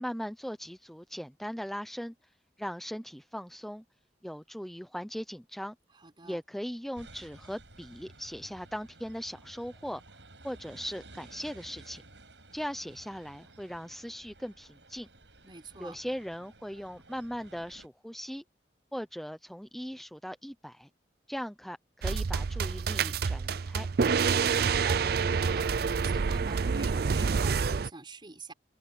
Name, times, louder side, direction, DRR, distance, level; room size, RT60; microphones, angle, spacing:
voice 1, 0.0-2.3 2.6-3.8 4.2-5.7 6.2-10.0 10.4-12.0 12.5-15.1 15.8-18.4 18.9-20.9 21.3-23.9, equal, ahead, 0.7 m, -39 dB
voice 2, 5.9-6.4 15.4-16.0 24.6-25.7 26.0-28.5, right 3 dB, 30° right, 4.2 m, -46 dB
sound 1, 6.9-17.9, right 2 dB, 90° right, 7.7 m, -54 dB
sound 2, 22.0-27.9, right 5 dB, 60° right, 0.5 m, -27 dB
head